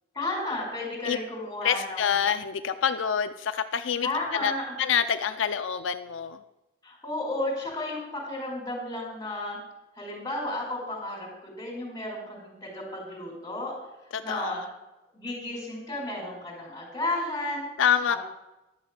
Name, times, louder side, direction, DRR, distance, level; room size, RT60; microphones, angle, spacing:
voice 1, 0.1-2.1 4.0-4.8 6.8-9.6 10.0-13.8 14.2-14.6 15.1-17.7 18.1-18.2, left 2 dB, 15° left, -4 dB, 4.8 m, -33 dB
voice 2, 1.6-4.5 4.8-6.4 14.1-14.7 17.8-18.2, left 8 dB, 80° left, 10 dB, 0.4 m, -27 dB
12.0 x 6.4 x 7.5 m, 0.98 s
head